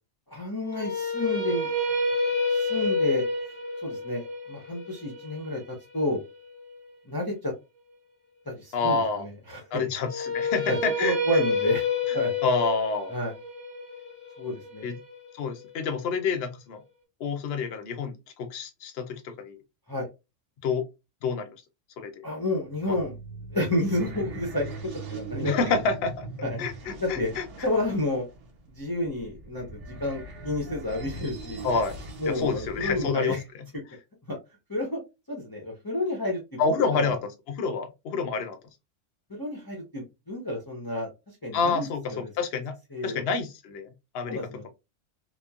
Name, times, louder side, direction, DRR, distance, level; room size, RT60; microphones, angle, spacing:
voice 1, 0.3-1.7 2.5-3.2 3.8-6.2 7.1-7.5 8.5-9.9 10.7-11.9 12.1-12.4 13.1-13.3 14.4-14.9 19.9-20.1 22.2-23.1 23.5-24.7 25.1-25.5 26.4-27.3 27.6-28.3 28.8-31.7 32.2-33.4 34.3-34.4 34.7-35.0 35.3-37.2 39.4-41.1 41.4-42.3 42.9-43.3 44.3-44.7, left 1 dB, 25° left, 0.5 m, -30 dB
sound 1, 0.6-6.7 10.0-16.0, left 2 dB, 30° right, 1.0 m, -29 dB
voice 2, 8.7-9.3 9.7-11.2 12.1-12.2 12.4-13.1 14.8-14.9 15.3-16.8 17.2-19.6 20.6-20.8 21.2-21.5 22.0-22.2 22.9-23.0 25.4-26.3 26.6-27.4 31.6-32.0 32.2-33.4 36.6-38.6 41.5-42.7 43.0-43.9 44.1-44.4, left 4 dB, 60° left, 0.7 m, -28 dB
sound 2, 22.6-33.1, right 3 dB, 70° right, 1.1 m, -40 dB
2.9 x 2.0 x 2.3 m
omnidirectional pair, 1.3 m